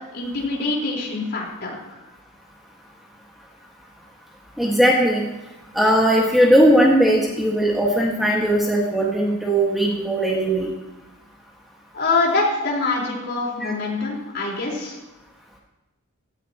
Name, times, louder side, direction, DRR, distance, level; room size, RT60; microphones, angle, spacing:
voice 1, 0.1-2.0 11.9-15.0, left 3 dB, 50° left, -3 dB, 4.4 m, -24 dB
voice 2, 4.6-5.2 5.7-10.7 13.6-13.7, right 1 dB, ahead, -3 dB, 1.7 m, -18 dB
17.0 x 15.0 x 3.0 m, 1.0 s
head